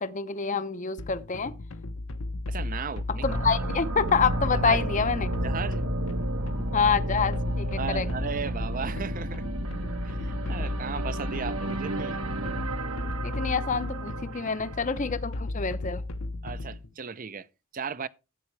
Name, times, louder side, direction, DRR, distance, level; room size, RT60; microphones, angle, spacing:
voice 1, 0.0-1.5 3.2-5.3 6.7-8.1 13.2-16.0, left 5 dB, 35° left, 0.7 m, -27 dB
sound 1, 1.0-16.9, left 2 dB, 65° left, 0.9 m, -35 dB
voice 2, 2.5-3.4 4.5-4.9 5.4-5.9 7.8-9.5 10.0-12.2 16.4-17.5 17.7-18.1, right 5 dB, 40° right, 0.6 m, -35 dB
sound 2, 3.2-15.1, right 1 dB, 70° right, 1.3 m, -32 dB
13.0 x 8.6 x 3.3 m
head